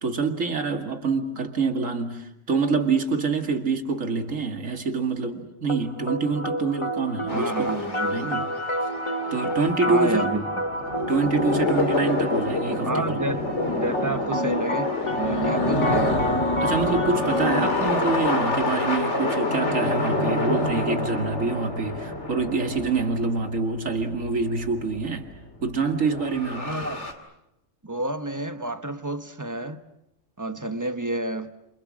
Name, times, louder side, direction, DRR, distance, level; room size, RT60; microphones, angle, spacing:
voice 1, 0.0-7.7 8.1-8.5 9.3-10.2 11.1-13.2 16.6-25.3 25.6-26.7, right 4 dB, 90° right, 2.5 m, -26 dB
sound 1, 5.7-21.7, equal, 25° left, 1.2 m, -30 dB
sound 2, 7.3-25.4 25.6-27.1, left 2 dB, 65° left, 2.9 m, -28 dB
voice 2, 7.3-8.5 9.9-10.6 12.7-16.3 26.6-27.1 27.8-29.8 30.4-31.5, right 2 dB, 15° right, 1.0 m, -30 dB
28.5 x 28.0 x 6.4 m
omnidirectional pair, 1.3 m